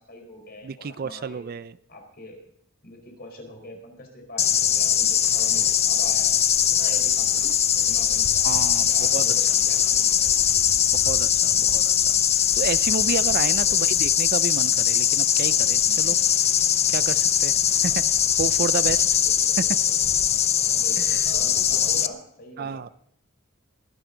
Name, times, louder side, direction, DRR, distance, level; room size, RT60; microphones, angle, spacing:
voice 1, 0.0-1.4 1.9-2.4 2.8-7.5 7.8-8.6 8.9-10.6 11.5-11.9 13.6-13.9 17.8-18.1 19.2-20.0 20.7-22.9, left 1 dB, 50° left, 3 dB, 4.4 m, -43 dB
voice 2, 0.6-1.7 8.4-9.3 10.9-11.9 12.3-16.2 16.9-17.6 17.8-18.0 18.4-19.1 19.6-19.8 21.1-21.2 22.6-22.9, right 5 dB, 50° right, 16 dB, 0.4 m, -30 dB
sound 1, 4.4-22.1, left 9 dB, 30° left, 0.6 m, -21 dB
23.0 x 10.5 x 3.9 m, 0.70 s
head